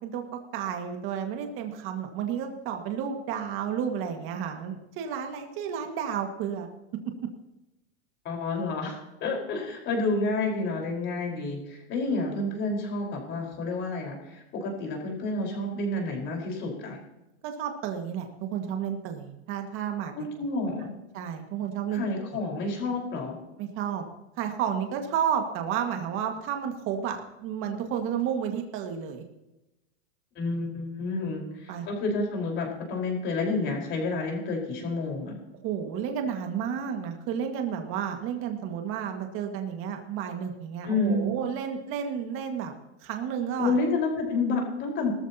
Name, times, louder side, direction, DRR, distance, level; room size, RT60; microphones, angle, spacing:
voice 1, 0.0-6.7 17.4-20.3 21.1-22.4 23.6-24.1 24.4-29.2 31.2-31.4 31.7-31.9 35.6-42.7 43.0-43.8, right 8 dB, 40° right, 4 dB, 1.8 m, -31 dB
voice 2, 8.2-17.0 20.1-20.9 21.9-23.4 30.4-35.4 40.8-41.3 43.6-45.1, left 3 dB, 35° left, 0 dB, 4.5 m, -29 dB
18.5 x 14.0 x 2.9 m, 0.95 s
supercardioid pair, 145°, 34 cm